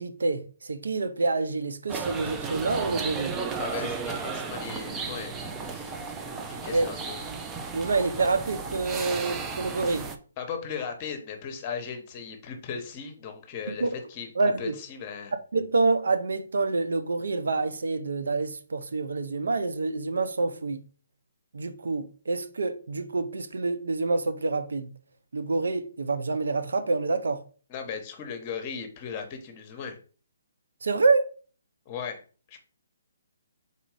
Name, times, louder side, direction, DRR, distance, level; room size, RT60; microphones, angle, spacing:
voice 1, 0.0-3.4 6.7-6.9 7.7-10.1 13.7-13.9 14.4-14.7 15.5-20.8 21.5-24.9 25.3-27.4 30.8-31.3, right 3 dB, 80° right, 0.6 m, -27 dB
sound 1, 1.9-10.2, right 4 dB, 15° right, 0.4 m, -34 dB
voice 2, 3.6-7.3 10.4-14.3 14.6-15.3 27.7-30.0 31.9-32.2 32.5-32.6, left 6 dB, 30° left, 0.9 m, -37 dB
4.1 x 2.6 x 4.7 m
hypercardioid pair, 155°, 0 cm